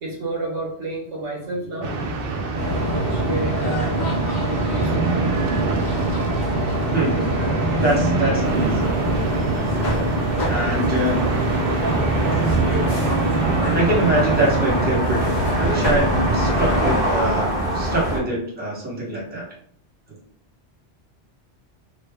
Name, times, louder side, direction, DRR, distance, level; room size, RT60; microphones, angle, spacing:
voice 1, 0.0-5.7, right 1 dB, 75° right, -3 dB, 1.3 m, -31 dB
sound 1, 1.8-14.8, right 3 dB, 60° right, 0.7 m, -25 dB
sound 2, 2.6-17.0, right 1 dB, 45° left, 0.8 m, -25 dB
voice 2, 7.8-9.0 9.8-10.1 10.5-11.2 13.7-19.4, right 1 dB, 10° right, -5 dB, 0.9 m, -24 dB
sound 3, 8.4-18.2, right 1 dB, 40° right, 1.1 m, -26 dB
3.3 x 2.1 x 3.4 m, 0.63 s
omnidirectional pair, 1.2 m